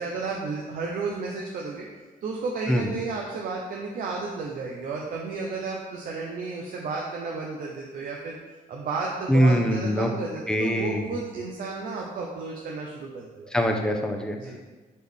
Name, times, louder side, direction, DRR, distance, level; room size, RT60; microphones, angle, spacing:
voice 1, 0.0-1.8 2.2-8.4 8.7-13.5 14.3-14.6, right 4 dB, 70° right, -1 dB, 0.7 m, -32 dB
voice 2, 9.3-10.1 10.5-11.0 13.5-14.4, equal, 5° left, 3 dB, 0.7 m, -23 dB
6.4 x 4.2 x 3.5 m, 1.2 s
cardioid pair, 110°, 15 cm